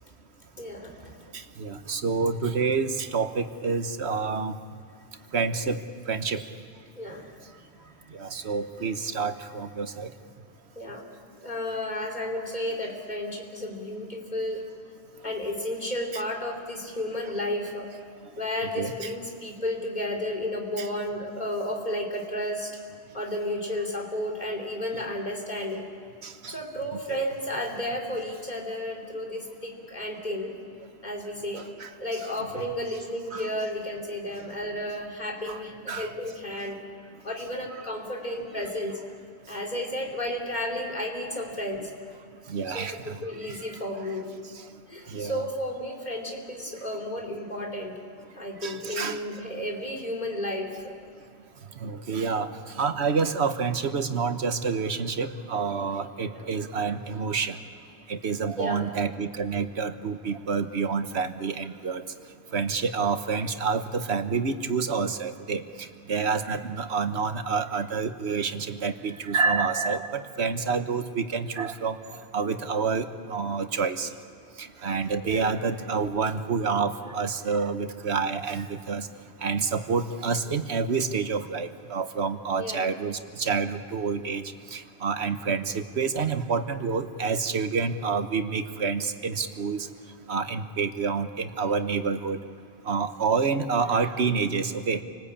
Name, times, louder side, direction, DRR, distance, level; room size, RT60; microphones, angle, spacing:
voice 1, 0.6-1.2 6.4-6.5 7.0-7.3 10.8-11.0 11.4-14.6 15.2-17.9 18.4-22.8 23.1-25.9 26.5-30.6 31.0-31.7 32.0-36.8 37.2-39.0 39.5-41.9 42.7-44.3 44.9-48.0 48.3-50.9 56.3-56.5 58.6-58.9 75.2-75.6 82.6-82.9, left 1 dB, 45° left, 0 dB, 3.6 m, -32 dB
voice 2, 1.3-4.6 5.3-5.8 6.1-6.4 8.1-10.1 16.1-16.2 18.8-19.1 20.8-20.9 26.2-26.6 26.9-27.2 29.3-29.4 31.6-31.9 32.5-32.7 33.3-33.5 35.5-35.6 35.9-36.1 42.5-43.8 45.1-45.4 48.6-49.5 51.8-57.6 58.1-62.0 62.5-72.0 72.3-74.1 74.6-79.1 79.4-84.4 84.7-89.9 90.3-92.4 92.8-95.0, right 5 dB, 85° right, 9 dB, 1.4 m, -28 dB
29.0 x 19.5 x 8.6 m, 2.3 s
omnidirectional pair, 1.1 m